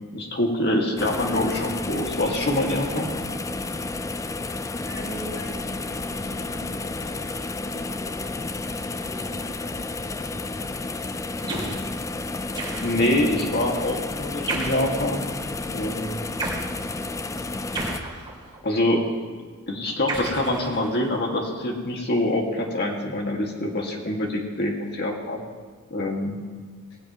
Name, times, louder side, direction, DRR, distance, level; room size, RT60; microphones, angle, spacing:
voice 1, 0.1-3.1 12.8-15.3 15.7-16.2 18.6-19.0 19.7-25.4 25.9-26.4, left 1 dB, 50° left, 0 dB, 2.0 m, -25 dB
sound 1, 1.0-18.0, left 3 dB, 15° left, 0.4 m, -31 dB
voice 2, 4.8-8.3 8.9-11.0 11.4-11.7, equal, 70° left, -3 dB, 4.9 m, -42 dB
sound 2, 11.5-11.9 12.5-13.2 14.5-15.0 16.4-16.7 17.7-18.6 20.1-21.1, right 2 dB, 20° right, 3.0 m, -32 dB
18.5 x 16.5 x 3.0 m, 1.5 s
head